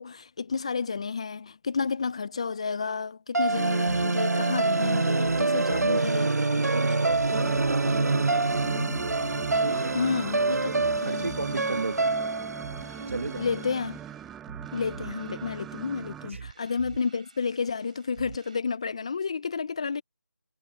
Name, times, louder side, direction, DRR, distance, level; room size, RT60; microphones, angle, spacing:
voice 1, 0.0-6.6 9.9-10.6 11.0-11.4 13.4-14.0 14.7-20.0, left 5 dB, 20° left, 0.7 m, -31 dB
sound 1, 3.3-13.6, right 3 dB, 85° right, 0.6 m, -26 dB
sound 2, 3.8-18.6, right 6 dB, 25° right, 7.8 m, -47 dB
voice 2, 5.4-6.3 6.6-8.5 9.5-10.1 10.5-12.2 12.5-12.6 13.1-13.5 16.2-16.4, right 3 dB, 50° right, 2.5 m, -35 dB
sound 3, 7.3-16.3, right 9 dB, 5° right, 1.2 m, -41 dB
figure-of-eight pair, 170°, 9 cm